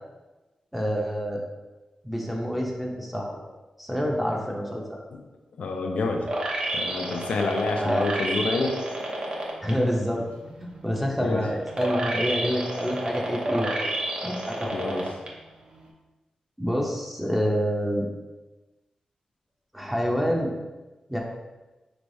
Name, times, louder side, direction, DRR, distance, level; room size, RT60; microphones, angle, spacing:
voice 1, 0.7-1.4 2.0-3.4 3.8-5.0 7.8-8.1 9.6-10.2 10.6-13.9 14.2-15.0 16.6-18.0 19.7-20.5 21.1-21.2, equal, 5° right, -1 dB, 0.7 m, -27 dB
voice 2, 5.6-6.4 6.7-8.8 11.2-11.4 14.7-15.1, left 3 dB, 80° left, 3 dB, 0.4 m, -28 dB
sound 1, 6.3-9.7 10.2-15.3 15.7-15.8, right 1 dB, 50° right, 0.8 m, -30 dB
4.4 x 3.2 x 2.7 m, 1.1 s
cardioid pair, 80°, 2 cm